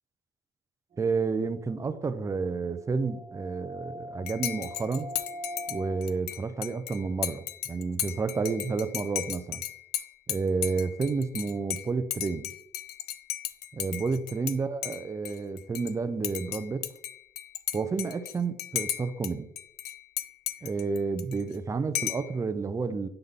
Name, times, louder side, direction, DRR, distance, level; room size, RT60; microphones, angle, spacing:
sound 1, 0.9-6.1, left 1 dB, 45° right, 1.2 m, -43 dB
voice 1, 1.0-5.1 5.7-9.6 10.3-12.5 13.7-16.8 17.7-19.5 20.6-23.1, right 4 dB, 20° right, 0.4 m, -30 dB
Dishes pots and pans / Cutlery silverware / Chink clink, 4.3-14.6 14.8-15.9 16.2-19.3 19.6-21.6 21.9-22.3, left 12 dB, 70° left, 0.4 m, -35 dB
7.9 x 3.7 x 3.5 m
cardioid pair, 110°, 17 cm